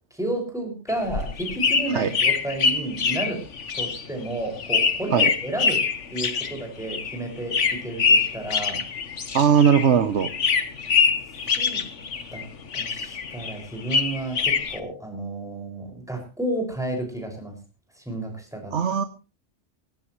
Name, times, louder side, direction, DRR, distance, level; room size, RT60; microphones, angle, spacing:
voice 1, 0.1-3.4 3.7-5.8 6.1-8.8 11.6-11.8 12.3-12.5 12.7-17.6 17.9-18.8, right 1 dB, 5° right, 1 dB, 5.9 m, -31 dB
sound 1, 0.9-9.9 10.2-12.4 12.7-14.8, left 5 dB, 85° left, 1.6 m, -24 dB
voice 2, 9.3-10.3 18.7-19.0, right 7 dB, 75° right, 10 dB, 1.2 m, -19 dB
18.5 x 16.5 x 3.1 m, 0.33 s
omnidirectional pair, 1.2 m